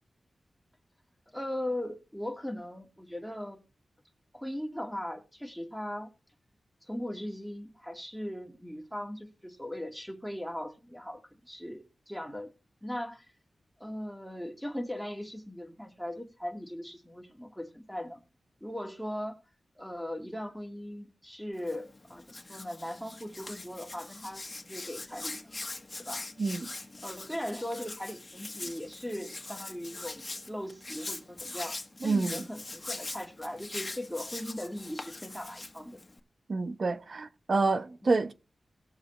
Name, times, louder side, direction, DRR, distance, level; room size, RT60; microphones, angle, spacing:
voice 1, 1.3-3.6 4.3-6.1 6.8-12.5 12.8-13.3 13.8-18.2 18.6-19.4 19.8-22.2 22.5-25.4 25.9-26.3 27.0-36.0 38.0-38.2, left 1 dB, ahead, 2.2 m, -39 dB
Hands, 21.5-36.2, left 2 dB, 30° left, 1.6 m, -42 dB
voice 2, 32.0-32.4 36.5-38.3, right 3 dB, 65° right, 1.0 m, -28 dB
19.0 x 7.3 x 3.2 m
wide cardioid pair, 70°, 0 cm